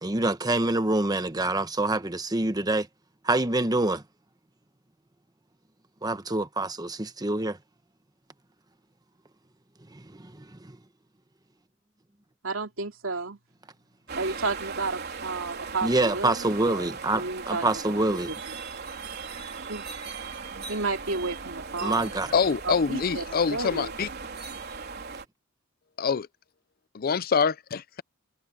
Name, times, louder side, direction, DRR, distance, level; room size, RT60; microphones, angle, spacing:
voice 1, 0.0-2.9 3.2-4.0 6.0-7.6 9.9-10.7 15.8-18.3 21.8-22.3, right 2 dB, 20° right, 1.1 m, -26 dB
voice 2, 12.4-13.4 14.2-17.6 19.7-20.1 20.7-22.2 22.6-23.2 23.5-23.9, right 3 dB, 80° right, 3.0 m, -32 dB
sound 1, 14.1-25.3, right 5 dB, 55° right, 3.9 m, -38 dB
voice 3, 22.3-24.1 26.0-26.3 26.9-28.0, left 6 dB, 45° left, 0.5 m, -25 dB
head